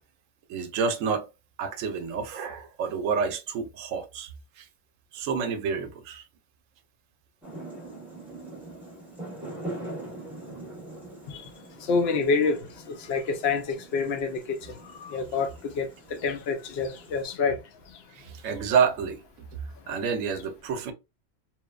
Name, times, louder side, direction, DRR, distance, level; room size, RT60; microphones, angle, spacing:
voice 1, 0.5-1.3 1.6-4.3 4.6-4.7 5.1-6.2 18.1-19.2 19.9-20.9, right 6 dB, 90° right, 1.0 m, -28 dB
sound 1, 7.4-17.2, right 2 dB, ahead, 0.9 m, -42 dB
voice 2, 11.9-14.6 15.0-17.6, left 4 dB, 65° left, 0.7 m, -27 dB
3.0 x 2.1 x 2.2 m
omnidirectional pair, 1.3 m